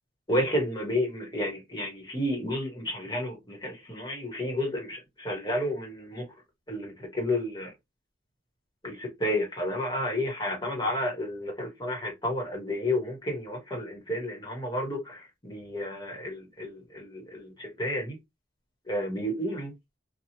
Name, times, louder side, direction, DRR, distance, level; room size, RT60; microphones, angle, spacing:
voice 1, 0.3-6.2 6.7-7.7 8.8-18.2 18.9-19.7, left 1 dB, 20° left, 1.1 m, -31 dB
2.9 x 2.3 x 2.7 m
head